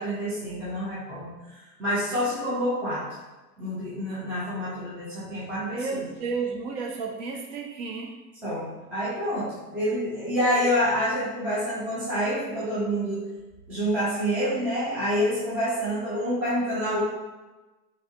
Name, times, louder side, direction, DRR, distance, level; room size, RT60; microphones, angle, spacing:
voice 1, 0.0-3.0 3.6-6.0 8.4-13.2 13.7-17.0, equal, 5° right, -9 dB, 0.3 m, -27 dB
voice 2, 5.5-8.2, right 4 dB, 45° right, 3 dB, 0.6 m, -32 dB
4.1 x 2.6 x 2.3 m, 1.1 s
hypercardioid pair, 120°, 48 cm